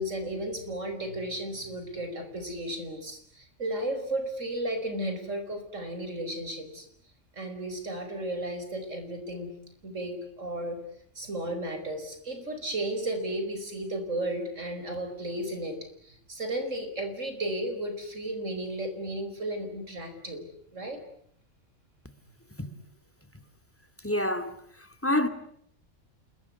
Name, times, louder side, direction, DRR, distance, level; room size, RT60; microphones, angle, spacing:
voice 1, 0.0-6.9 7.3-9.5 9.8-10.8 11.2-15.8 16.0-21.0, right 1 dB, 85° right, 5.5 m, -34 dB
voice 2, 24.0-24.6 25.0-25.3, left 1 dB, 10° left, 2.3 m, -26 dB
28.5 x 22.0 x 9.7 m
omnidirectional pair, 1.3 m